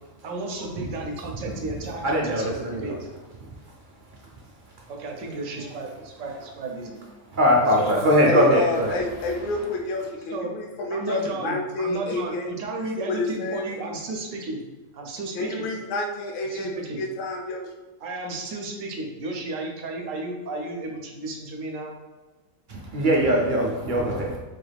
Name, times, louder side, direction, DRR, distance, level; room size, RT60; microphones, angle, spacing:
voice 1, 0.2-3.0 4.9-7.0 7.8-8.2 10.3-10.6 10.9-14.6 14.9-15.7 16.4-17.0 18.0-21.9, right 2 dB, 80° right, 2 dB, 1.0 m, -33 dB
voice 2, 2.0-3.0 7.3-9.0 22.7-24.4, equal, 55° right, -1 dB, 0.6 m, -21 dB
sound 1, 8.2-10.2 10.7-10.8, equal, 85° left, 1.9 m, -43 dB
voice 3, 8.2-12.5 13.0-13.7 15.3-17.7, left 2 dB, 55° left, 1 dB, 0.6 m, -29 dB
4.3 x 2.3 x 3.3 m, 1.2 s
omnidirectional pair, 1.3 m